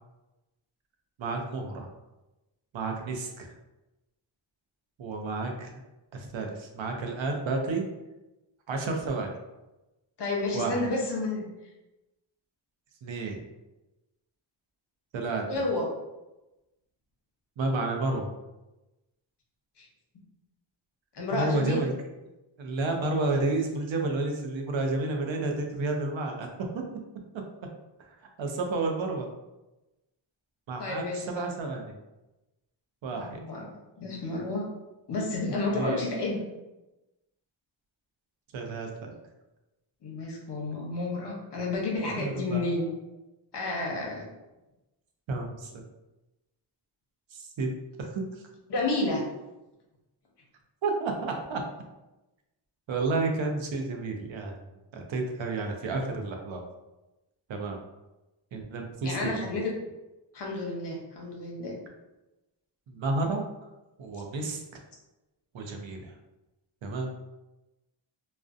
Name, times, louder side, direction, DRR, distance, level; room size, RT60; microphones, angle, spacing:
voice 1, 1.2-1.9 2.7-3.5 5.0-5.7 6.1-7.8 8.7-9.3 10.5-10.9 13.0-13.4 15.1-15.4 17.6-18.3 21.3-21.9 22.6-26.5 28.1-29.3 30.7-31.9 33.0-33.4 35.7-36.0 38.5-39.1 42.1-42.6 45.3-45.7 47.3-47.7 48.0-48.2 50.8-51.6 52.9-54.5 54.9-56.6 57.5-57.8 58.5-59.4 62.9-63.4 64.0-64.6 65.5-66.1 66.8-67.1, right 3 dB, 70° right, 2 dB, 0.5 m, -31 dB
voice 2, 10.2-11.5 15.5-15.8 19.8-19.9 21.1-21.9 30.8-31.5 33.1-34.7 35.1-36.4 40.0-42.8 43.5-44.3 48.7-49.3 59.0-59.7 60.3-61.8, left 2 dB, 55° left, -1 dB, 0.7 m, -31 dB
2.5 x 2.1 x 2.4 m, 1.0 s
wide cardioid pair, 105°, 48 cm